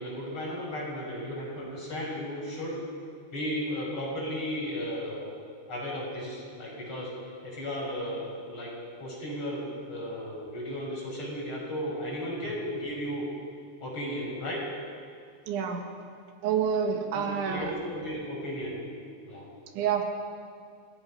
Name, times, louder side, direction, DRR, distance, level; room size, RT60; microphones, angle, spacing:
voice 1, 0.0-2.8 3.3-5.3 5.7-7.1 7.4-8.7 9.0-13.3 13.8-14.6 17.1-18.8 19.2-19.5, equal, 30° left, -4 dB, 6.4 m, -35 dB
voice 2, 15.5-15.8 16.4-17.7 19.8-20.0, right 7 dB, 85° right, 3 dB, 4.1 m, -28 dB
28.5 x 17.5 x 5.6 m, 2.2 s
omnidirectional pair, 5.2 m